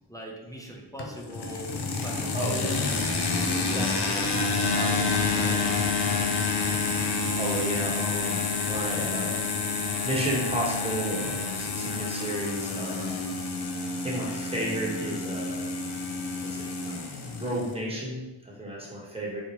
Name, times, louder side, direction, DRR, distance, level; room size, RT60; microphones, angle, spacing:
voice 1, 0.1-1.7 2.0-3.1 3.7-5.9, right 1 dB, 10° left, -2 dB, 0.6 m, -40 dB
sound 1, 1.0-17.7, left 4 dB, 60° left, 0.5 m, -28 dB
voice 2, 2.3-2.7 3.6-4.0 7.0-9.4 10.0-13.2 13.9-15.6 16.4-17.1 17.4-19.4, equal, 10° right, -4 dB, 1.0 m, -33 dB
4.1 x 2.1 x 3.0 m, 1.0 s
wide cardioid pair, 55°, 47 cm